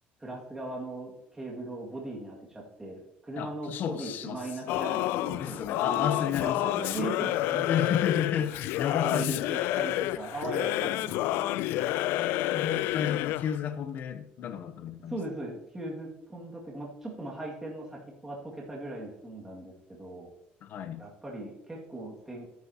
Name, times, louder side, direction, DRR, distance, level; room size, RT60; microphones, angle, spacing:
voice 1, 0.2-6.1 6.4-8.2 9.0-11.6 15.1-20.3 21.0-22.5, right 2 dB, 10° right, -3 dB, 2.1 m, -39 dB
voice 2, 3.4-4.4 5.4-7.0 7.7-9.4 10.8-11.1 12.2-15.2 20.6-21.1, left 8 dB, 55° left, 10 dB, 0.8 m, -32 dB
Singing / Musical instrument, 4.7-13.5, left 15 dB, 80° left, 0.4 m, -29 dB
13.5 x 9.3 x 2.9 m, 0.83 s
cardioid pair, 125°, 4 cm